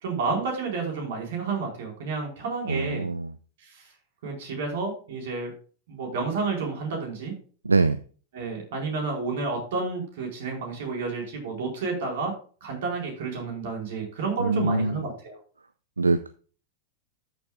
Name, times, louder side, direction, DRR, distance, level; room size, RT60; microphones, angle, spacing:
voice 1, 0.0-3.1 3.6-3.8 4.2-5.5 5.9-7.3 8.3-12.3 12.6-15.4, right 4 dB, 60° right, 1 dB, 4.3 m, -30 dB
voice 2, 2.7-3.3 7.7-8.0 14.4-15.0 16.0-16.3, right 3 dB, 85° right, 15 dB, 0.4 m, -23 dB
13.5 x 7.1 x 2.4 m, 0.39 s
figure-of-eight pair, 95°, 0 cm